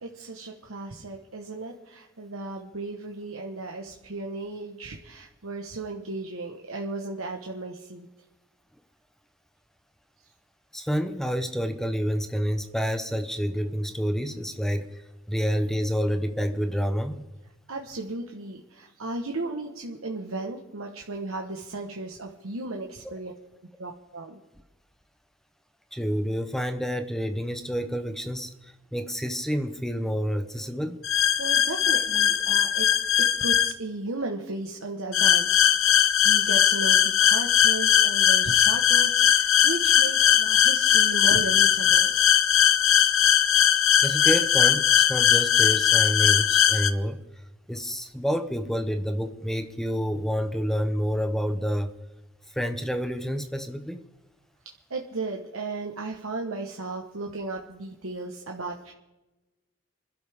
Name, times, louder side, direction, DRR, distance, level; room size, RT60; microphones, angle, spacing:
voice 1, 0.0-8.1 17.7-23.3 23.8-24.4 31.4-32.9 33.2-42.1 54.9-58.9, right 2 dB, 85° right, 1 dB, 1.2 m, -35 dB
voice 2, 10.7-17.2 25.9-31.0 44.0-47.2 47.7-51.9 52.5-54.0, equal, ahead, 8 dB, 0.7 m, -28 dB
sound 1, 31.0-33.7 35.1-46.9, left 10 dB, 75° left, 0.8 m, -20 dB
26.0 x 12.0 x 3.6 m, 1.1 s
head